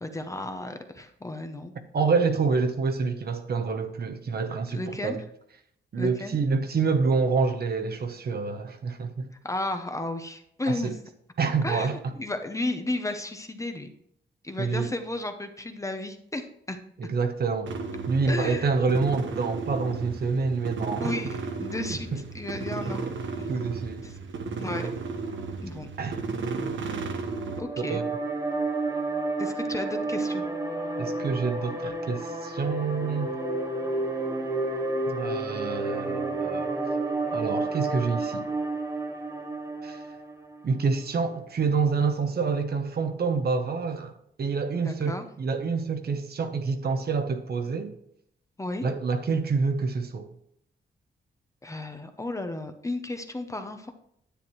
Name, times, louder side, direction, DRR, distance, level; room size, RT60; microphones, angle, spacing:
voice 1, 0.0-1.7 4.7-5.2 6.0-6.4 9.4-10.9 11.6-13.9 14.4-16.8 18.3-18.7 21.0-22.1 22.3-23.1 23.4-23.5 24.0-24.2 24.6-24.9 25.6-25.9 27.6-28.0 29.4-30.4 44.8-45.3 48.6-48.8 51.6-53.9, left 2 dB, 15° left, 0.7 m, -33 dB
voice 2, 1.9-5.2 5.9-9.3 10.7-11.0 11.4-12.1 14.6-14.9 17.0-17.7 18.1-21.1 21.8-22.2 22.9-23.0 23.5-24.0 26.0-26.2 27.9-28.0 31.0-33.4 35.1-36.7 37.3-38.4 39.8-40.0 40.6-47.9 48.8-50.3, right 4 dB, 55° right, 0.9 m, -27 dB
sound 1, 17.7-27.6, right 4 dB, 85° right, 1.1 m, -34 dB
sound 2, 27.3-40.6, right 2 dB, 20° right, 1.1 m, -30 dB
10.0 x 9.1 x 3.1 m
wide cardioid pair, 150°, 19 cm